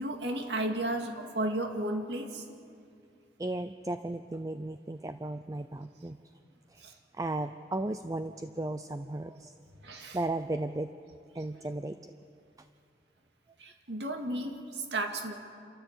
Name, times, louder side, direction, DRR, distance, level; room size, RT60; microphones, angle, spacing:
voice 1, 0.0-2.4 6.8-6.9 9.8-10.2 13.6-15.3, right 1 dB, 80° right, 4 dB, 2.3 m, -33 dB
voice 2, 3.4-6.2 6.7-6.9 7.2-9.5 10.1-10.9 11.3-12.1, right 2 dB, 20° right, 9 dB, 0.5 m, -35 dB
28.0 x 13.5 x 8.3 m, 2.4 s
head